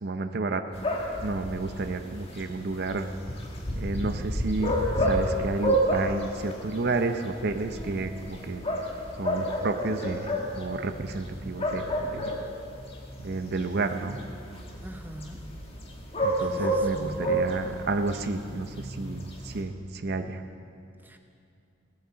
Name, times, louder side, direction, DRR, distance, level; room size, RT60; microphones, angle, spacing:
voice 1, 0.0-0.6 1.2-3.1 3.7-8.6 9.2-11.9 12.1-12.3 13.2-14.2 16.2-20.4, right 3 dB, 55° right, 7 dB, 0.6 m, -31 dB
sound 1, 0.7-19.6, equal, 30° left, 1.6 m, -31 dB
voice 2, 14.8-15.4 16.5-17.2 21.0-21.2, right 1 dB, 10° right, 5 dB, 0.7 m, -41 dB
16.5 x 8.9 x 6.8 m, 2.5 s
head